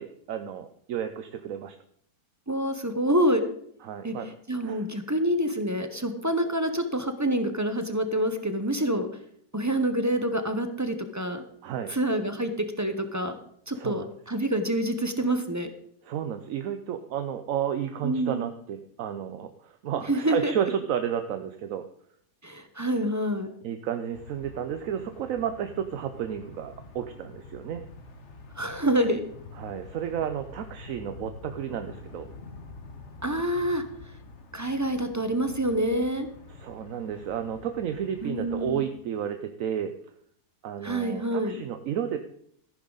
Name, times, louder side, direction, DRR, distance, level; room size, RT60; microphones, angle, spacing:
voice 1, 0.0-1.8 3.8-4.3 4.6-4.8 11.6-11.9 13.7-14.1 16.1-21.8 23.6-27.8 29.6-32.3 36.5-39.9 40.6-42.2, right 9 dB, 60° right, 8 dB, 1.0 m, -32 dB
voice 2, 2.5-3.4 4.0-4.1 4.5-9.1 9.5-11.4 11.9-12.5 12.8-13.4 13.7-15.7 18.0-18.5 20.1-20.5 22.4-23.5 28.6-29.2 33.2-33.8 34.5-36.3 38.2-38.8 40.8-41.5, right 1 dB, 15° right, 8 dB, 0.7 m, -27 dB
sound 1, 24.1-38.8, left 3 dB, 45° left, 1.4 m, -47 dB
14.0 x 11.0 x 4.0 m, 0.66 s
omnidirectional pair, 1.8 m